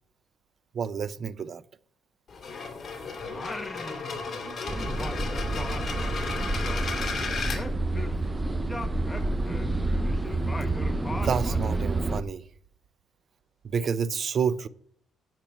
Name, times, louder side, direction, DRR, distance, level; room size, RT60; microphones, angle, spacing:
voice 1, 0.7-1.6 11.1-12.4 13.6-14.7, right 6 dB, 50° right, 0.7 m, -29 dB
sound 1, 2.3-7.6, left 4 dB, 45° left, 2.7 m, -34 dB
voice 2, 3.2-3.8 4.1-4.6 5.2-7.7 7.9-8.7 9.2-9.9, right 6 dB, 70° right, 5.1 m, -50 dB
Singing, 3.3-4.4 4.7-8.3 8.6-11.9, left 2 dB, 15° left, 1.3 m, -39 dB
sound 2, 4.7-12.2, right 2 dB, 20° right, 0.9 m, -29 dB
10.5 x 7.7 x 5.7 m
cardioid pair, 90°, 0 cm